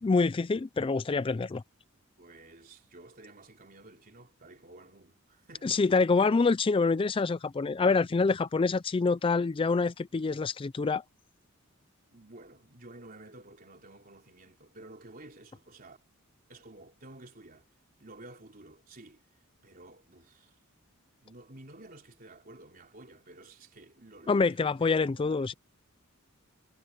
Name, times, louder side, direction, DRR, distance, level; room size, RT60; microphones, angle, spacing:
voice 1, 0.0-1.6 5.6-11.0 24.3-25.5, left 4 dB, 25° left, 0.3 m, -26 dB
voice 2, 2.2-6.0 12.1-16.0 16.5-17.7 18.0-19.2 19.6-20.6 21.2-24.7 25.1-25.6, right 2 dB, 40° right, 3.6 m, -52 dB
head